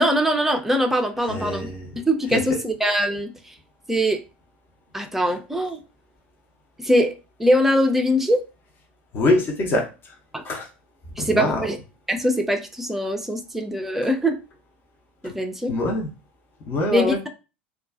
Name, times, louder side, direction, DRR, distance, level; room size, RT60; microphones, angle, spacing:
voice 1, 0.0-3.3 3.9-4.2 4.9-5.8 6.8-7.1 7.4-8.4 10.3-10.4 11.2-11.8 12.1-14.4 15.2-15.7 16.9-17.3, equal, 5° right, 4 dB, 0.4 m, -22 dB
voice 2, 1.3-2.0 2.3-2.4 9.1-9.9 10.4-10.7 11.2-11.7 15.7-16.1 16.7-17.3, left 2 dB, 35° left, 2 dB, 0.7 m, -23 dB
2.3 x 2.3 x 2.3 m, 0.30 s
figure-of-eight pair, 80°, 6 cm